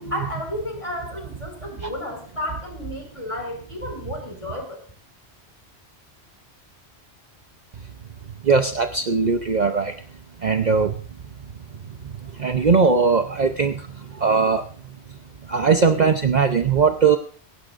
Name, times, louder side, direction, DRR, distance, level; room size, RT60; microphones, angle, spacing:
voice 1, 0.1-4.8, left 1 dB, 30° left, 2 dB, 4.7 m, -32 dB
voice 2, 8.4-9.9 10.4-10.9 12.4-13.8 14.2-14.6 15.5-17.2, right 5 dB, 45° right, 6 dB, 0.8 m, -19 dB
17.5 x 16.5 x 2.5 m, 0.43 s
omnidirectional pair, 1.1 m